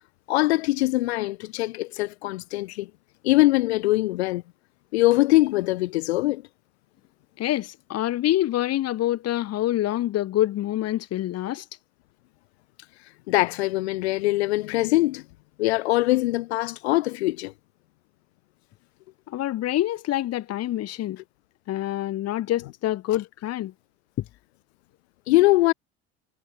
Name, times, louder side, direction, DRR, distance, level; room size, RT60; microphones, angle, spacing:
voice 1, 0.3-2.9 3.2-4.4 4.9-6.4 13.3-15.2 15.6-17.5 25.3-25.7, left 19 dB, 90° left, 2.3 m, -22 dB
voice 2, 7.4-11.6 19.3-21.2 21.7-23.7, left 14 dB, 50° left, 2.7 m, -26 dB
supercardioid pair, 95°, 31 cm